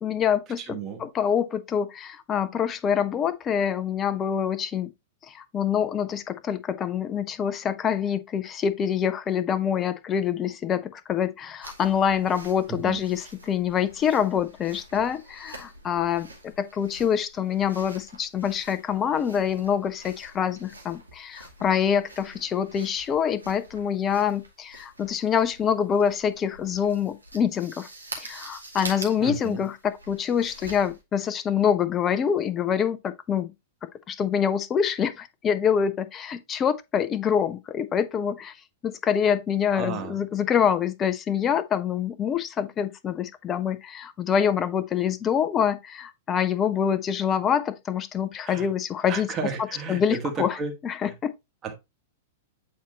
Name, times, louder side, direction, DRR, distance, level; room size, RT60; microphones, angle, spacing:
voice 1, 0.0-4.9 5.3-27.9 28.2-33.5 34.1-38.5 38.8-49.3 49.9-50.5 50.8-51.3, left 8 dB, 25° left, 0.6 m, -26 dB
voice 2, 0.6-1.0 12.7-13.0 29.2-29.6 39.7-40.2 48.4-48.7 49.1-50.7 51.0-51.1 51.6-51.8, right 4 dB, 25° right, 1.5 m, -33 dB
sound 1, 11.6-31.0, right 2 dB, 80° right, 1.5 m, -46 dB
8.4 x 4.2 x 2.8 m
figure-of-eight pair, 100°, 0 cm